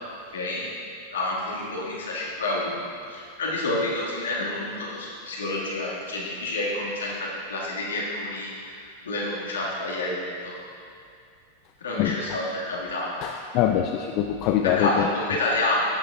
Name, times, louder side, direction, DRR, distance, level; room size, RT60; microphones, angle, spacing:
voice 1, 0.3-0.7 1.1-2.7 3.1-8.7 9.0-10.2 10.4-10.5 11.8-13.1 14.6-15.8, left 2 dB, 65° left, -5 dB, 1.9 m, -28 dB
voice 2, 12.0-12.4 13.2-15.1, left 11 dB, 40° left, 4 dB, 0.4 m, -24 dB
12.5 x 9.0 x 2.5 m, 2.4 s
figure-of-eight pair, 90°, 0 cm